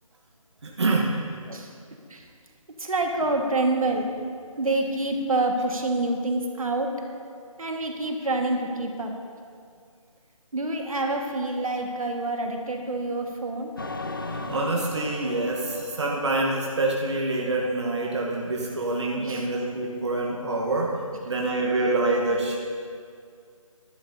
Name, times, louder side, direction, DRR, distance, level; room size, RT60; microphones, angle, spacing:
voice 1, 0.6-1.1 14.2-21.0 21.2-22.6, right 2 dB, 50° right, -2 dB, 1.2 m, -26 dB
voice 2, 2.8-4.1 4.6-6.9 7.6-9.1 10.5-13.7 19.2-19.4, right 2 dB, 75° right, 2 dB, 1.6 m, -27 dB
sound 1, 13.8-17.2, left 2 dB, 40° left, 0.5 m, -37 dB
15.0 x 11.5 x 2.7 m, 2.2 s
figure-of-eight pair, 175°, 18 cm